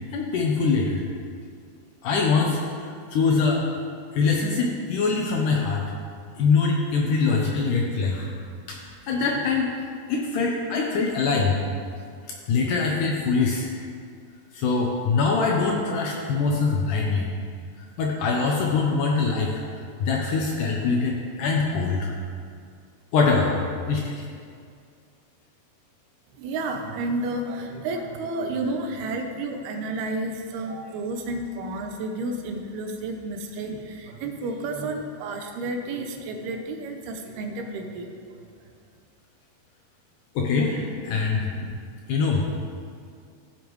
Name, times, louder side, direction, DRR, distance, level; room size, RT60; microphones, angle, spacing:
voice 1, 0.1-1.0 2.0-3.7 4.1-5.8 6.4-8.3 8.7-8.8 9.1-9.7 10.1-11.6 12.5-13.7 14.5-17.3 18.0-19.5 20.0-22.1 23.1-24.2 40.4-41.7 42.1-42.5, left 4 dB, 75° left, -1 dB, 2.0 m, -23 dB
voice 2, 26.3-38.7, right 2 dB, 85° right, 4 dB, 2.8 m, -31 dB
15.5 x 7.0 x 3.1 m, 2.2 s
omnidirectional pair, 4.4 m